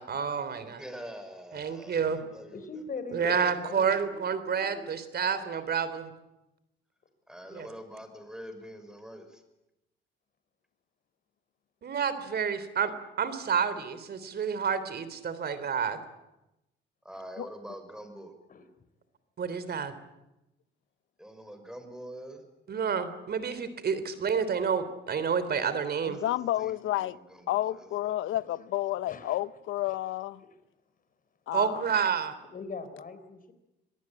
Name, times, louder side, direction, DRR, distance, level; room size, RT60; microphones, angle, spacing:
voice 1, 0.0-0.8 1.5-2.2 3.1-6.1 7.5-7.7 11.8-12.9 13.2-16.0 19.4-19.9 22.7-26.2 31.5-32.3, right 6 dB, 55° right, 3.3 m, -29 dB
voice 2, 0.8-2.7 3.1-3.3 7.3-9.4 17.0-18.3 21.2-22.4 26.1-27.9, equal, 5° right, 5.8 m, -45 dB
voice 3, 2.5-4.0 4.7-4.8 18.5-18.7 29.1-29.4 29.9-30.0 32.5-33.5, left 4 dB, 45° left, 4.0 m, -40 dB
voice 4, 26.1-27.2 27.5-30.4 31.5-31.9, left 14 dB, 85° left, 0.8 m, -31 dB
25.5 x 18.5 x 8.9 m
cardioid pair, 90°, 20 cm